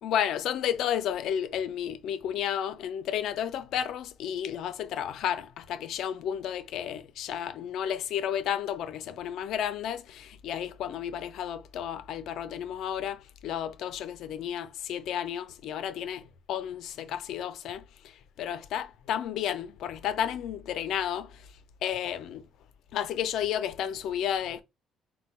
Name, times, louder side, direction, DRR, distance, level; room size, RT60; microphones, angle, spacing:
voice 1, 0.0-21.5 21.8-22.4 22.9-24.6, left 9 dB, 70° left, 0.5 m, -32 dB
4.3 x 2.2 x 4.3 m
cardioid pair, 120°, 0 cm